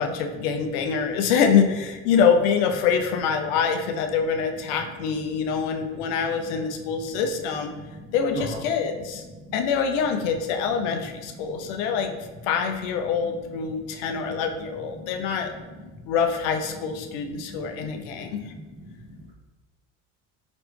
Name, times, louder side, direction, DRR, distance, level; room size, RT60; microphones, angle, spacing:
voice 1, 0.0-7.7 8.1-9.2 9.5-12.1 12.4-15.5 16.1-18.5, left 6 dB, 75° left, 5 dB, 0.6 m, -25 dB
voice 2, 5.6-6.1 7.9-8.1 8.3-8.6 9.4-9.5 11.4-11.5 14.1-14.4 15.0-15.1 17.3-19.0, equal, 30° right, -4 dB, 0.8 m, -40 dB
5.0 x 3.0 x 3.2 m, 1.2 s
supercardioid pair, 95°, 36 cm